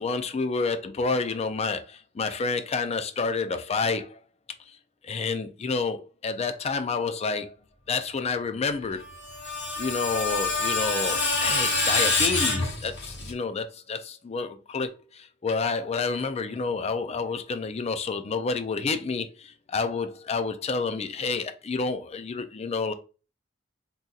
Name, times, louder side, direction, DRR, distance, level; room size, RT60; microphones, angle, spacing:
voice 1, 0.0-4.2 5.0-7.5 7.9-9.0 9.8-22.9, left 4 dB, 35° left, 0.4 m, -29 dB
Screech, 9.0-13.3, left 3 dB, 60° left, 1.4 m, -26 dB
3.8 x 2.8 x 2.3 m
head